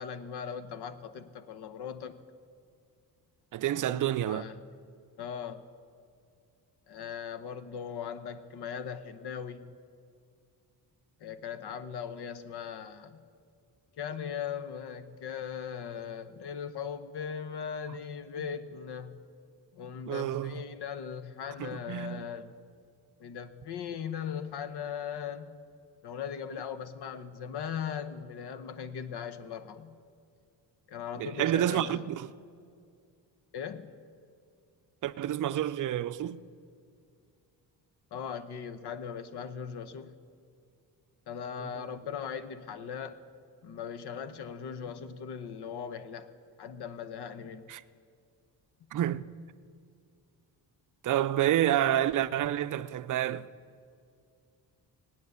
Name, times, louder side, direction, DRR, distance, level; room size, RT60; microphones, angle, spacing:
voice 1, 0.0-2.2 3.9-4.5 5.2-5.6 6.9-9.7 11.2-13.2 14.0-19.3 19.7-22.5 23.2-25.6 26.0-30.0 30.9-32.0 33.5-34.0 38.1-40.1 41.3-43.2 43.6-46.3 46.6-47.7, left 7 dB, 70° left, 1.0 m, -39 dB
voice 2, 3.5-4.5 18.4-18.5 20.1-20.6 21.6-22.2 31.2-32.3 35.0-36.4 41.6-41.9 47.7-47.8 48.9-49.3 51.0-53.5, right 12 dB, 50° right, 0.5 m, -29 dB
18.0 x 9.4 x 8.1 m
cardioid pair, 125°, 41 cm